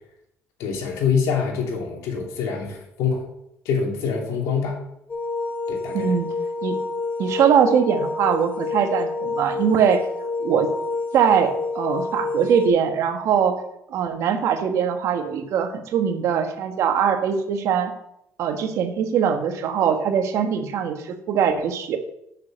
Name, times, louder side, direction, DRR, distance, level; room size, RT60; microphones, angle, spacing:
voice 1, 0.6-3.2 3.6-4.8 5.7-6.1, left 6 dB, 85° left, 1 dB, 2.6 m, -25 dB
sound 1, 5.1-12.7, left 3 dB, 25° left, 2.0 m, -28 dB
voice 2, 5.9-6.3 6.6-6.8 7.2-10.0 10.4-10.7 11.1-13.6 13.9-17.9 18.4-22.0, right 7 dB, 70° right, 6 dB, 1.4 m, -21 dB
6.8 x 6.6 x 7.4 m, 0.79 s
cardioid pair, 105°, 5 cm